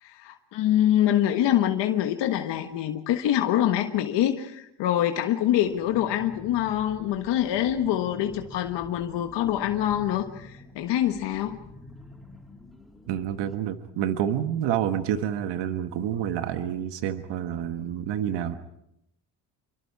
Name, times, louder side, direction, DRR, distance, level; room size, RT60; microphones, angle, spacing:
voice 1, 0.0-11.6, left 11 dB, 85° left, 5 dB, 1.5 m, -25 dB
sound 1, 5.6-13.6, left 2 dB, ahead, 3.4 m, -48 dB
voice 2, 13.1-18.6, right 10 dB, 90° right, 8 dB, 1.5 m, -28 dB
27.0 x 24.0 x 4.8 m, 0.81 s
cardioid pair, 95°, 41 cm